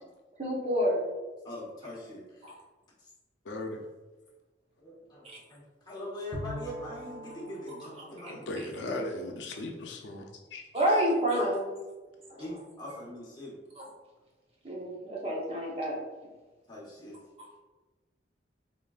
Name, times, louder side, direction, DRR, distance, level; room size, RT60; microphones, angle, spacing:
voice 1, 0.4-1.0 2.4-2.5 5.2-5.4 10.7-11.7 12.3-12.4 14.6-16.0, equal, 35° right, -3 dB, 0.8 m, -28 dB
voice 2, 1.4-2.5 3.0-3.1 4.8-8.5 12.4-13.6 16.7-17.2, left 1 dB, 25° left, -6 dB, 1.0 m, -42 dB
voice 3, 3.4-3.8 8.5-11.0, left 2 dB, 85° left, 2 dB, 0.5 m, -37 dB
Bowed string instrument, 6.3-10.0, equal, 55° right, 1.1 m, -44 dB
3.7 x 3.6 x 2.3 m, 1.2 s
head